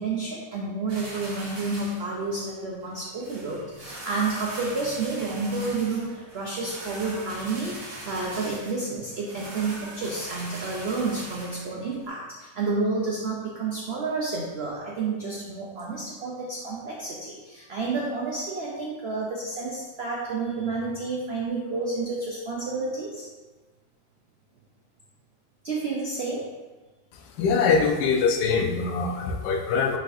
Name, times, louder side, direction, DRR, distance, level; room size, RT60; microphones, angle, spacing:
voice 1, 0.0-7.8 8.0-23.3 25.6-26.5, right 3 dB, 80° right, -3 dB, 0.5 m, -30 dB
sound 1, 0.9-12.1, right 1 dB, 45° right, 1.0 m, -41 dB
voice 2, 27.4-30.0, left 5 dB, 85° left, 3 dB, 1.2 m, -23 dB
4.8 x 4.1 x 2.6 m, 1.2 s
omnidirectional pair, 1.9 m